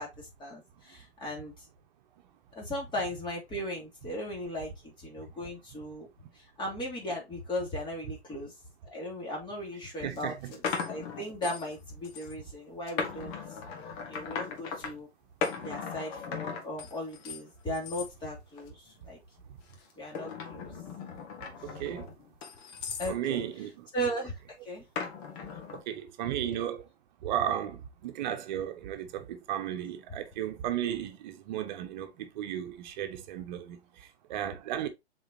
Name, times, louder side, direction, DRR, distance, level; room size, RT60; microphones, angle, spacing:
voice 1, 0.0-1.5 2.5-6.1 6.3-8.5 8.9-10.6 10.9-13.3 14.1-15.1 15.6-19.2 20.0-20.7 23.0-23.4 23.9-24.3 24.6-24.8, equal, 15° left, 3.0 m, -37 dB
sound 1, 9.5-9.6 10.1-11.8 12.0-12.3 12.9-14.9 15.4-17.4 17.7-18.1 18.6-19.0 19.7-23.2 25.0-25.8, left 6 dB, 35° left, 1.9 m, -38 dB
voice 2, 10.0-10.5 21.6-22.1 23.1-23.9 25.7-26.8 27.2-34.9, right 10 dB, 40° right, 1.3 m, -34 dB
7.1 x 4.5 x 2.9 m
hypercardioid pair, 130°, 33 cm